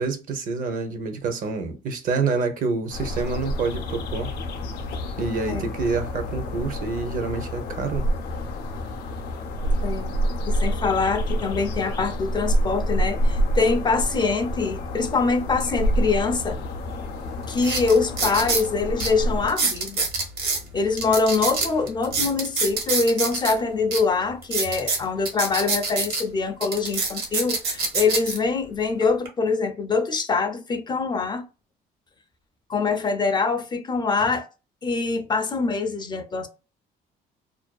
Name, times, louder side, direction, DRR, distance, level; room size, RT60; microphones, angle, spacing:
voice 1, 0.0-4.3 5.2-8.1, right 4 dB, 55° right, 0.6 m, -27 dB
sound 1, 2.9-19.5, equal, 75° left, 0.5 m, -28 dB
voice 2, 9.8-10.1 10.4-16.6 17.5-20.1 20.7-31.4 32.7-34.5 34.8-36.5, left 4 dB, 25° left, 0.4 m, -24 dB
sound 2, 16.9-17.0 17.5-18.7 19.0-19.1 19.5-20.6 21.0-23.5 23.9-24.0 24.4-26.2 26.6-28.4 29.0-29.3, right 3 dB, 70° right, 1.1 m, -25 dB
2.5 x 2.2 x 2.2 m
cardioid pair, 110°, 17 cm